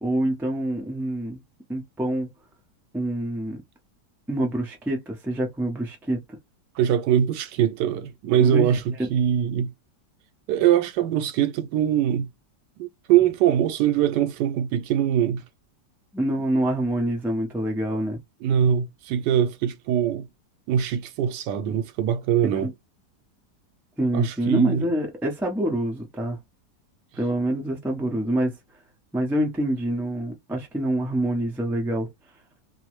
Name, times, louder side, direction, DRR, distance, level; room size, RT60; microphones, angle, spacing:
voice 1, 0.0-1.4 1.7-2.3 2.9-3.6 4.3-6.2 8.4-8.7 9.0-9.1 16.1-18.2 21.7-21.8 22.6-22.7 24.0-26.4 27.1-28.6 29.1-32.1, right 1 dB, 5° right, 0.3 m, -26 dB
voice 2, 6.8-9.7 10.5-12.3 12.8-15.4 18.4-20.3 20.7-22.7 24.1-24.9, right 10 dB, 90° right, 1.2 m, -22 dB
3.0 x 2.1 x 3.0 m
omnidirectional pair, 1.8 m